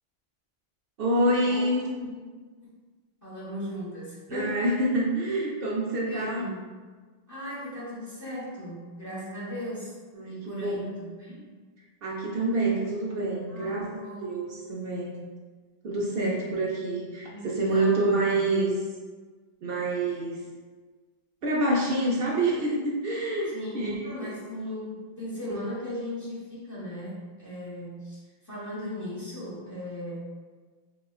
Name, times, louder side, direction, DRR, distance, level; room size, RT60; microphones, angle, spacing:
voice 1, 1.0-1.9 4.3-6.5 10.1-10.8 12.0-13.9 14.2-15.1 15.8-18.9 19.6-20.4 21.4-24.4 25.5-25.6, right 1 dB, 65° right, -4 dB, 0.8 m, -27 dB
voice 2, 3.2-4.8 6.0-6.7 7.3-10.0 10.3-11.5 13.5-14.3 15.9-16.4 17.3-18.2 23.5-30.2, equal, 20° left, -9 dB, 1.1 m, -37 dB
5.0 x 2.3 x 2.3 m, 1.4 s
omnidirectional pair, 1.0 m